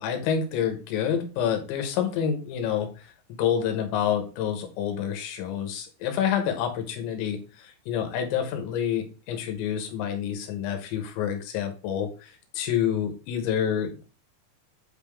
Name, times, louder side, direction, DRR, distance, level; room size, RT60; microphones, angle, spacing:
voice 1, 0.0-2.9 3.4-14.0, left 8 dB, 80° left, 6 dB, 3.3 m, -28 dB
8.7 x 3.4 x 3.5 m, 0.34 s
omnidirectional pair, 5.4 m